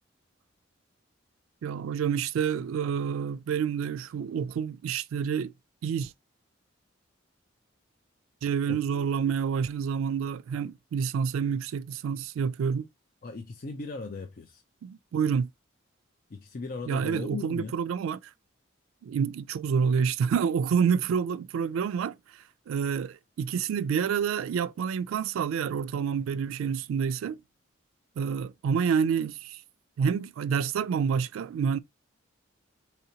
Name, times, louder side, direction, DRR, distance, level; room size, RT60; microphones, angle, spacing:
voice 1, 1.6-5.5 5.8-6.1 8.4-12.9 14.8-15.5 16.9-18.2 19.0-22.2 22.7-27.4 28.2-29.6 30.0-31.8, right 7 dB, 90° right, 0.3 m, -28 dB
voice 2, 8.7-9.0 13.2-14.6 16.3-17.8, left 3 dB, 45° left, 0.4 m, -38 dB
4.2 x 2.8 x 2.7 m
head